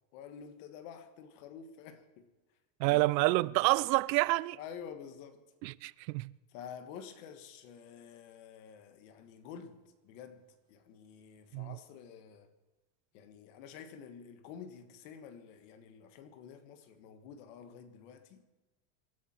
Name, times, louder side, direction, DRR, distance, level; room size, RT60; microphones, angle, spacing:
voice 1, 0.1-2.3 2.8-3.1 4.6-5.4 6.5-12.5 13.1-18.4, left 7 dB, 50° left, 1.6 m, -49 dB
voice 2, 2.8-4.6 5.6-6.3 11.5-11.8, right 21 dB, 90° right, 0.6 m, -28 dB
26.5 x 12.5 x 4.4 m
supercardioid pair, 180°, 50 cm